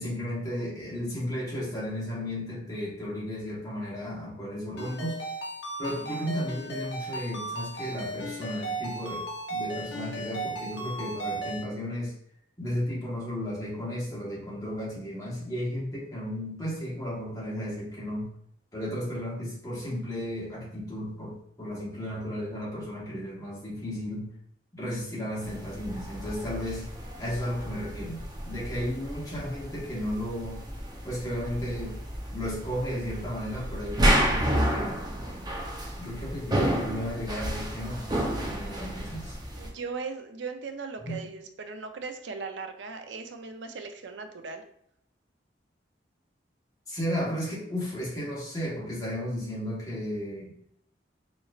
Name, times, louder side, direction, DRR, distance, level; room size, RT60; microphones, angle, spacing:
voice 1, 0.0-5.3 5.8-12.1 12.6-18.3 18.7-24.3 24.7-26.9 27.2-30.6 31.0-32.0 32.3-35.0 36.0-38.1 38.4-39.4 41.1-41.3 46.9-50.5, equal, 20° left, -5 dB, 1.2 m, -34 dB
Ringtone, 4.8-11.6, right 2 dB, 75° left, 0.7 m, -36 dB
voice 2, 5.9-6.3 39.6-44.6, right 4 dB, 90° right, 6 dB, 0.5 m, -38 dB
sound 1, 25.4-39.7, equal, 25° right, 0.6 m, -31 dB
4.2 x 3.1 x 2.4 m, 0.72 s
head